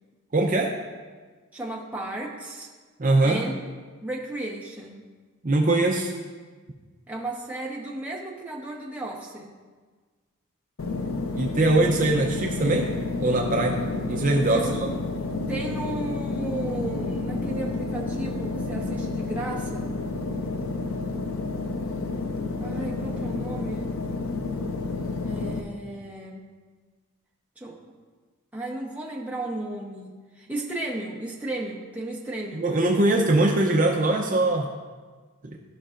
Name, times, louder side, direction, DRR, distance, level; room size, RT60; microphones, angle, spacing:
voice 1, 0.3-0.7 3.0-3.4 5.4-6.1 11.3-12.9 13.2-14.9 32.5-34.7 35.5-35.6, right 2 dB, 35° right, 0 dB, 0.6 m, -22 dB
voice 2, 1.5-2.7 3.2-3.6 4.0-5.0 7.1-9.5 14.5-14.7 15.5-20.0 22.6-23.9 25.2-26.5 27.6-27.8 28.5-30.1 30.4-32.7, right 2 dB, 5° right, -3 dB, 0.9 m, -34 dB
sound 1, 10.8-25.6, left 3 dB, 70° left, 0.6 m, -30 dB
14.0 x 5.4 x 2.5 m, 1.4 s
head